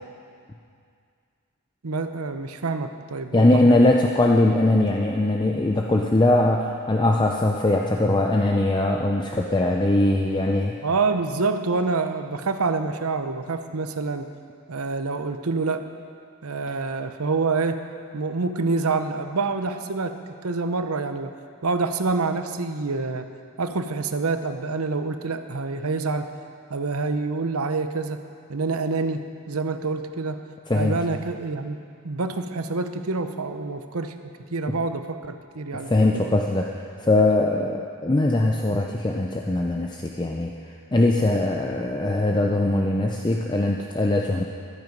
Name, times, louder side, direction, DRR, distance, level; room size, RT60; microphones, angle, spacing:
voice 1, 1.8-3.8 10.8-14.3 14.7-15.9 16.4-17.9 18.1-21.3 21.6-23.3 23.6-26.3 26.7-28.2 28.5-30.5 30.7-31.8 32.0-34.2 34.5-36.3, right 3 dB, 80° right, 8 dB, 0.8 m, -27 dB
voice 2, 3.3-10.8 30.7-31.0 35.7-44.4, left 2 dB, 20° left, 1 dB, 0.5 m, -21 dB
14.0 x 12.5 x 5.3 m, 2.3 s
head